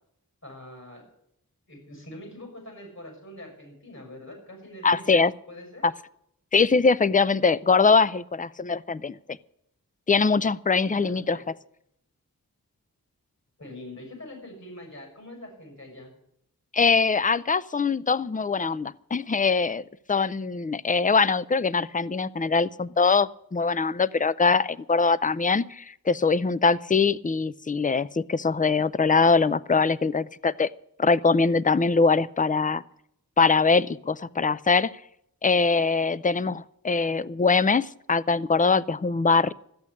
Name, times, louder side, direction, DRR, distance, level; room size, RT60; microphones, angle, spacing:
voice 1, 0.4-1.1 1.7-5.2 5.5-5.9 11.0-11.5 13.6-16.1, left 1 dB, 50° left, 2 dB, 6.6 m, -43 dB
voice 2, 4.8-5.3 5.8-5.9 6.5-9.4 10.1-11.4 16.7-30.7 31.0-32.8 33.4-34.9 35.4-39.5, left 4 dB, 25° left, 18 dB, 0.5 m, -22 dB
13.5 x 8.4 x 9.8 m, 0.75 s
wide cardioid pair, 50°, 36 cm